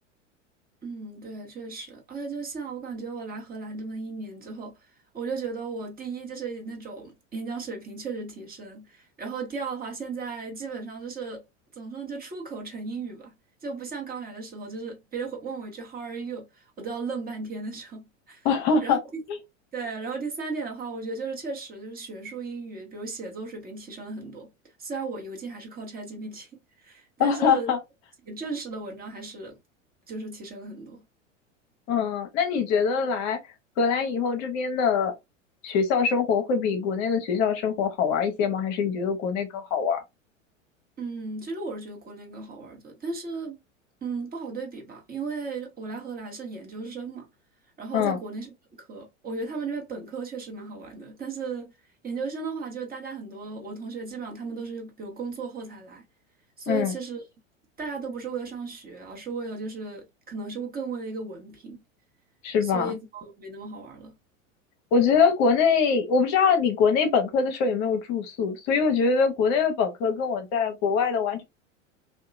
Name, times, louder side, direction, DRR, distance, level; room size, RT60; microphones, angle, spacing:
voice 1, 0.8-4.9 5.1-11.4 11.7-13.3 13.6-18.5 18.8-19.2 19.7-24.5 24.8-27.7 28.2-29.6 30.1-31.0 41.0-43.6 44.0-47.3 47.8-48.5 48.8-51.7 52.0-56.0 56.6-57.2 57.8-61.8 62.6-64.1, right 4 dB, 25° right, 0.9 m, -35 dB
voice 2, 18.4-19.0 19.3-19.4 27.2-27.8 31.9-33.4 33.8-35.1 35.6-40.0 47.9-48.2 56.7-56.9 62.4-62.9 64.9-71.4, left 6 dB, 45° left, 0.7 m, -23 dB
2.8 x 2.2 x 2.4 m
hypercardioid pair, 90°, 38 cm